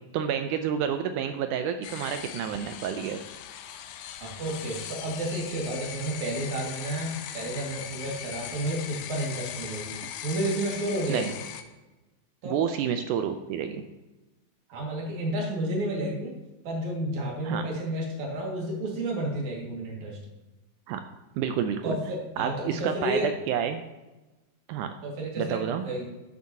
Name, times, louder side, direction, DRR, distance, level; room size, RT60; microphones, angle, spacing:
voice 1, 0.1-3.2 11.1-11.3 12.5-13.9 17.4-17.6 20.9-21.0 21.4-22.0 22.4-23.8 24.7-24.9 25.4-25.8, right 8 dB, 80° right, 8 dB, 1.8 m, -29 dB
sound 1, 1.8-11.6, left 10 dB, 85° left, 2.4 m, -39 dB
voice 2, 4.2-11.3 12.4-12.6 14.7-16.3 16.6-20.3 21.8-23.3 25.0-26.1, right 1 dB, 55° right, -1 dB, 3.2 m, -31 dB
12.0 x 8.3 x 2.8 m, 1.1 s
omnidirectional pair, 4.1 m